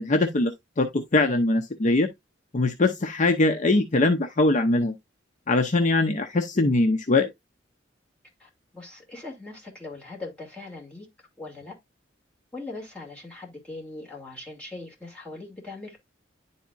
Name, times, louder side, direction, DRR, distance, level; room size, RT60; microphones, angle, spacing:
voice 1, 0.0-2.1 2.5-5.0 5.5-7.3, left 2 dB, 40° left, 0.6 m, -22 dB
voice 2, 8.4-11.1 11.4-11.8 12.5-16.0, left 2 dB, 5° left, 2.6 m, -40 dB
10.0 x 4.1 x 2.5 m
head